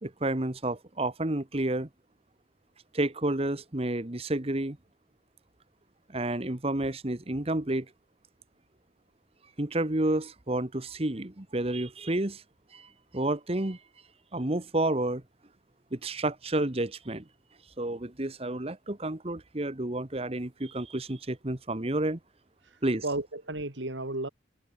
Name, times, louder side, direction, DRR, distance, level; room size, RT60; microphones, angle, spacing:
voice 1, 0.0-1.9 2.9-4.8 6.1-7.9 9.6-12.4 12.7-13.8 14.3-15.2 15.9-17.2 17.8-22.2 22.8-23.0, right 1 dB, 30° right, 1.4 m, -30 dB
voice 2, 22.6-24.3, right 2 dB, 80° right, 3.1 m, -34 dB
head